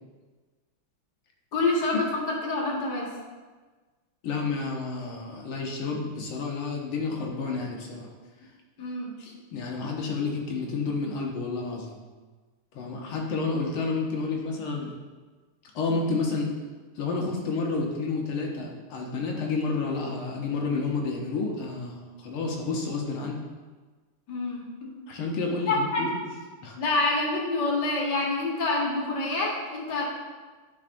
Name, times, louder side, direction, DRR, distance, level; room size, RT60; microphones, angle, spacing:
voice 1, 1.5-3.1 8.8-9.2 24.3-24.6 25.7-26.0 26.8-30.1, left 2 dB, 50° left, -3 dB, 1.9 m, -27 dB
voice 2, 4.2-8.1 9.2-11.9 12.7-14.9 15.8-16.5 17.0-23.4 25.1-26.3 26.6-26.8, left 4 dB, 75° left, 0 dB, 1.8 m, -30 dB
11.0 x 5.6 x 2.5 m, 1.3 s
omnidirectional pair, 2.4 m